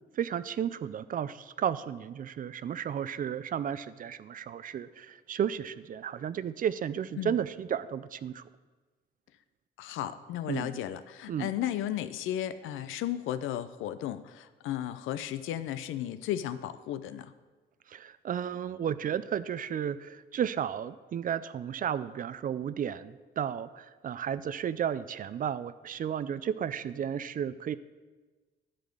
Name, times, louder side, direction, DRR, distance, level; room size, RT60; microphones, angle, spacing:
voice 1, 0.1-8.4 10.5-10.8 11.3-11.5 17.9-27.8, right 9 dB, 45° right, 15 dB, 0.4 m, -33 dB
voice 2, 9.8-17.3, left 11 dB, 90° left, 13 dB, 0.5 m, -34 dB
11.0 x 4.2 x 6.6 m, 1.3 s
cardioid pair, 90°, 20 cm